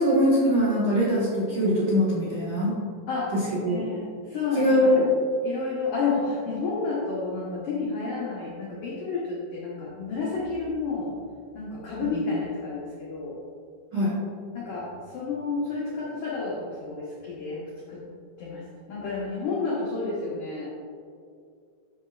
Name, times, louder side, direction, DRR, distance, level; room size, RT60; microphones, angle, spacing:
voice 1, 0.0-2.7 3.3-3.8 4.5-5.1 13.9-14.2, equal, 80° right, -8 dB, 1.5 m, -22 dB
voice 2, 3.7-5.0 5.4-11.1 11.5-13.4 14.5-18.0 18.4-18.6 18.9-20.7, left 4 dB, 85° left, -6 dB, 1.8 m, -30 dB
10.5 x 6.8 x 2.4 m, 2.3 s
omnidirectional pair, 5.4 m